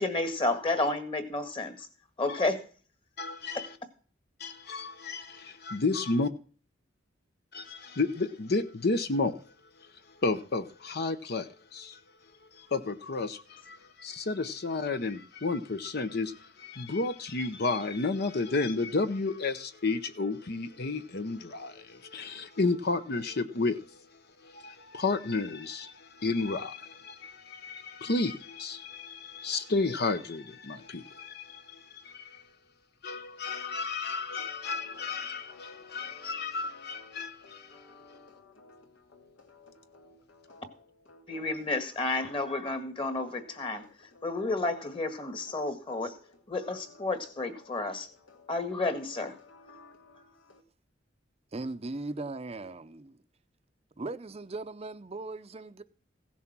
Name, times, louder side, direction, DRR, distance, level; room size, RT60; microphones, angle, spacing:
voice 1, 0.0-1.9 2.2-2.6 3.5-3.6 41.3-46.2 46.5-48.1 48.5-49.4, left 2 dB, 30° left, 1.7 m, -31 dB
voice 2, 3.2-3.7 4.4-6.3 7.5-9.3 10.2-12.0 12.5-23.8 24.4-32.4 33.0-37.8, left 3 dB, 55° left, 0.8 m, -32 dB
sound 1, 34.3-50.6, left 3 dB, 80° left, 2.6 m, -56 dB
voice 3, 51.5-53.2 54.0-55.8, right 2 dB, 30° right, 0.6 m, -38 dB
16.0 x 7.2 x 6.1 m
head